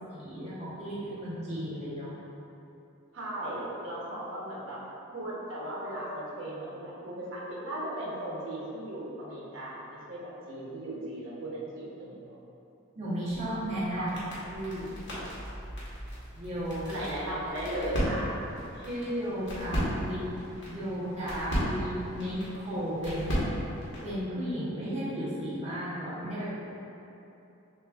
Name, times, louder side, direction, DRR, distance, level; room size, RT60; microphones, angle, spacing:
voice 1, 0.1-2.1 12.9-14.1 14.5-15.0 16.3-17.0 18.7-20.3 20.7-23.4 24.0-26.6, equal, 30° right, -11 dB, 1.0 m, -34 dB
voice 2, 3.1-4.8 5.1-12.2 14.0-14.1 16.9-18.3, right 1 dB, 65° right, -6 dB, 0.9 m, -36 dB
sound 1, 13.3-24.2, equal, 60° left, 1.2 m, -36 dB
6.1 x 2.5 x 2.4 m, 2.9 s
head